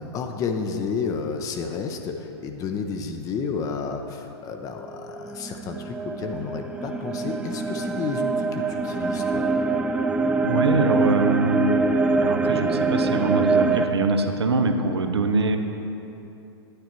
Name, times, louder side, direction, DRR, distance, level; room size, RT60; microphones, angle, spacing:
voice 1, 0.1-9.4, left 5 dB, 25° left, 4 dB, 0.7 m, -31 dB
sound 1, 5.2-13.9, right 3 dB, 5° right, 0.3 m, -24 dB
voice 2, 10.4-11.8 12.2-15.6, right 3 dB, 70° right, 6 dB, 0.8 m, -23 dB
10.0 x 9.8 x 4.4 m, 2.9 s
figure-of-eight pair, 100°, 14 cm